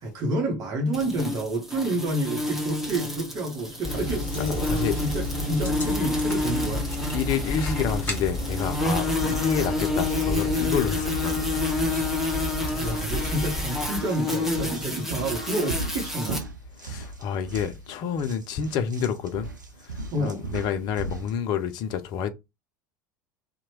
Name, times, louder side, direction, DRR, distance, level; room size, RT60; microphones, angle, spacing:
voice 1, 0.0-4.7 5.0-6.8 12.8-16.4 20.1-20.4, right 1 dB, 40° right, 0.9 m, -29 dB
sound 1, 0.9-16.4, left 2 dB, 5° right, 0.9 m, -29 dB
sound 2, 3.8-13.8, equal, 15° left, 1.4 m, -32 dB
voice 2, 4.4-5.0 7.1-11.5 16.8-19.5 19.8-22.3, left 7 dB, 45° left, 0.4 m, -29 dB
sound 3, 13.2-13.4 13.8-21.4, right 2 dB, 85° right, 0.4 m, -38 dB
2.8 x 2.1 x 2.9 m
figure-of-eight pair, 70°, 10 cm